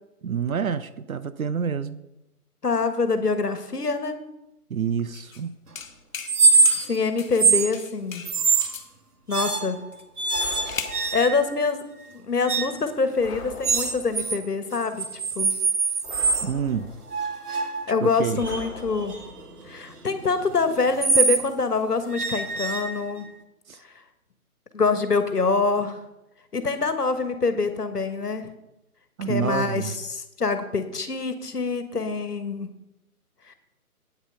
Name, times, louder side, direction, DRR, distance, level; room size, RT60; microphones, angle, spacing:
voice 1, 0.2-2.0 4.7-5.6 16.4-16.9 18.0-18.4 23.7-23.8 29.2-29.9, right 7 dB, 65° right, 0.8 m, -28 dB
voice 2, 2.6-4.2 6.9-8.2 9.3-9.8 11.1-11.8 12.1-15.1 15.3-15.6 17.5-19.2 19.6-23.2 24.7-26.0 26.5-28.5 29.2-32.7 33.5-33.6, left 4 dB, 90° left, 1.4 m, -25 dB
sound 1, 5.1-5.4 5.7-6.4 6.6-7.5 7.7-8.9 9.9-11.0, left 6 dB, 60° left, 1.3 m, -37 dB
sound 2, 6.3-7.0 7.3-7.7 8.3-8.8 9.3-9.8 10.2-11.5 12.5-12.8 13.6-14.4 14.7-16.5 17.1-21.5 22.1-23.3, right 4 dB, 80° right, 1.8 m, -24 dB
sound 3, 10.3-11.4 13.2-14.3 16.0-17.2 18.4-19.5, left 6 dB, 20° left, 3.0 m, -41 dB
8.7 x 8.5 x 5.5 m
figure-of-eight pair, 145°, 45 cm